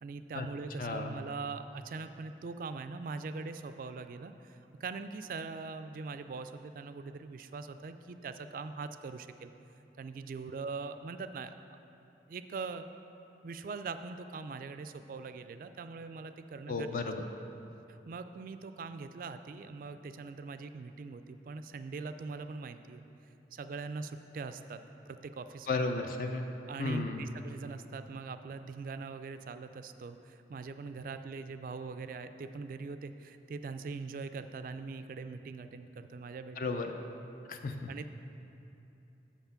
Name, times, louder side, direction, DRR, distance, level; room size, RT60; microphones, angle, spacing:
voice 1, 0.0-9.5 10.0-11.5 12.3-12.8 13.4-17.1 18.1-23.0 23.5-25.9 26.7-36.8 37.9-38.1, right 4 dB, 50° right, 10 dB, 0.3 m, -42 dB
voice 2, 0.8-1.2 16.7-17.2 25.7-26.5 26.8-27.3 36.6-36.9 37.5-37.9, left 3 dB, 50° left, 5 dB, 0.4 m, -34 dB
7.2 x 5.8 x 5.7 m, 2.9 s
head